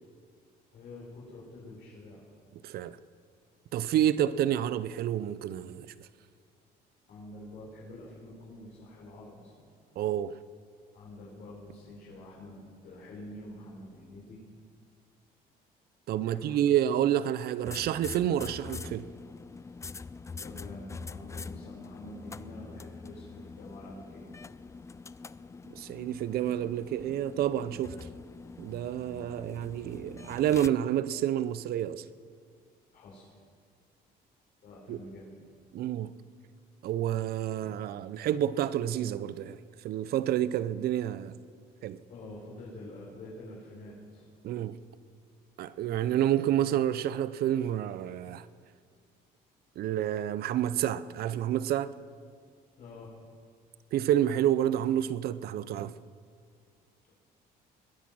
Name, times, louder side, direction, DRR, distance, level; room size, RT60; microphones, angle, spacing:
voice 1, 0.7-2.2 7.1-9.6 10.9-14.4 16.2-16.6 20.4-24.3 32.9-33.3 34.6-35.3 42.1-44.3 52.8-53.1, left 1 dB, 60° left, 5.2 m, -47 dB
voice 2, 2.6-3.0 3.7-6.1 10.0-10.3 16.1-19.1 25.7-28.0 28.6-32.0 34.9-35.0 35.7-36.1 36.8-39.6 39.8-41.3 41.8-42.0 44.4-44.8 45.6-48.5 49.8-51.9 53.9-55.9, right 11 dB, 65° right, 0.6 m, -29 dB
sound 1, 17.6-30.7, left 4 dB, 15° left, 0.4 m, -44 dB
22.0 x 10.0 x 6.3 m
cardioid pair, 110°, 17 cm